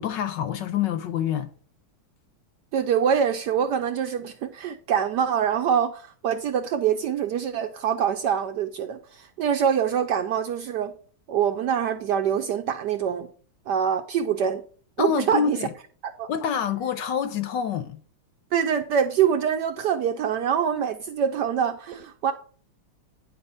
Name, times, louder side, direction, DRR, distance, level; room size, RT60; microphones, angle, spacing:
voice 1, 0.0-1.5 15.0-15.7 16.3-18.0, left 8 dB, 70° left, 1.2 m, -26 dB
voice 2, 2.7-10.9 11.3-13.3 13.7-14.6 15.0-15.6 16.0-16.3 18.5-22.3, right 8 dB, 75° right, 1.0 m, -25 dB
9.7 x 4.1 x 5.6 m
omnidirectional pair, 2.3 m